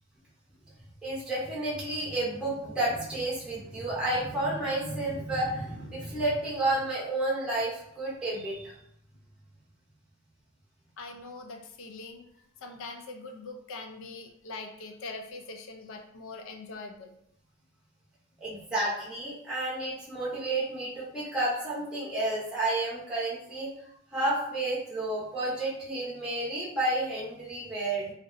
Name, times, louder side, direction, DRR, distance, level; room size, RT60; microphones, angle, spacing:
voice 1, 1.0-8.7 18.4-23.7 24.1-28.1, right 2 dB, 5° right, -7 dB, 0.6 m, -31 dB
voice 2, 11.0-12.2 12.6-17.1, left 3 dB, 65° left, 3 dB, 0.3 m, -42 dB
2.7 x 2.0 x 2.4 m, 0.70 s
head